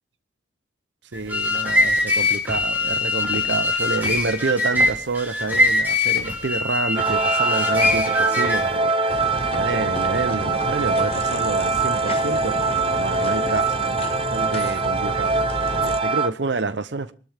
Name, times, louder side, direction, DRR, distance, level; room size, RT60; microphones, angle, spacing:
sound 1, 1.1-8.8, left 2 dB, 10° right, 3.9 m, -22 dB
voice 1, 1.1-15.4 15.8-17.1, right 3 dB, 70° right, 0.8 m, -28 dB
sound 2, 6.9-16.3, right 4 dB, 30° right, 0.7 m, -23 dB
sound 3, 9.1-16.0, left 2 dB, 30° left, 0.8 m, -32 dB
24.5 x 13.0 x 3.5 m
head